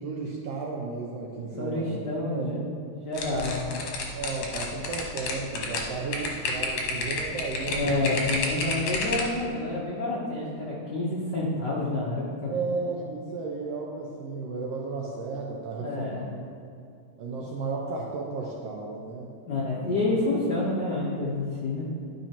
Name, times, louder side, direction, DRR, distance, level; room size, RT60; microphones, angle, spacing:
voice 1, 0.0-2.0 2.3-2.5 3.3-3.7 4.1-8.0 12.5-16.3 17.2-19.3 19.8-19.9, right 4 dB, 75° right, -1 dB, 1.5 m, -34 dB
voice 2, 1.5-2.6 3.0-3.7 7.7-12.5 15.8-16.3 17.4-17.5 19.5-21.9, left 2 dB, 85° left, -5 dB, 0.9 m, -28 dB
sound 1, 3.1-9.4, left 3 dB, 65° left, 1.6 m, -30 dB
11.5 x 5.5 x 2.9 m, 2.5 s
omnidirectional pair, 3.4 m